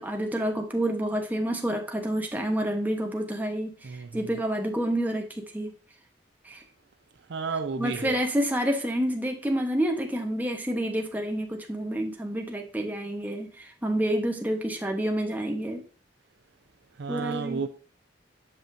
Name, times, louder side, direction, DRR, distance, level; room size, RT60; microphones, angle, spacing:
voice 1, 0.0-5.7 6.4-6.6 7.5-15.8 17.1-17.6, right 1 dB, 10° right, 1.0 m, -29 dB
voice 2, 7.3-8.2 17.0-17.7, right 5 dB, 65° right, 0.5 m, -31 dB
7.6 x 5.8 x 2.6 m
head